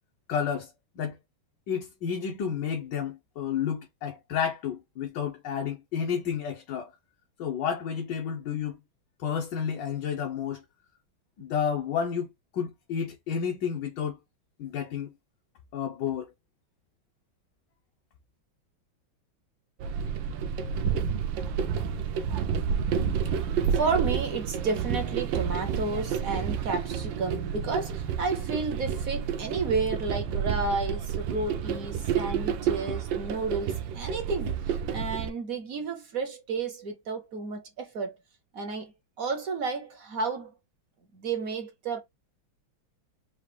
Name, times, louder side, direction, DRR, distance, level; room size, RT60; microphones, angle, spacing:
voice 1, 0.3-1.2 1.7-6.9 7.4-8.8 9.2-10.6 11.4-12.3 12.5-14.2 14.6-15.1 15.7-16.3, left 7 dB, 65° left, 1.4 m, -31 dB
sound 1, 19.8-35.3, right 7 dB, 75° right, 1.3 m, -30 dB
voice 2, 23.7-38.1 38.5-38.9 39.2-40.5 41.1-42.0, right 4 dB, 55° right, 1.0 m, -32 dB
4.9 x 2.4 x 3.3 m
omnidirectional pair, 2.2 m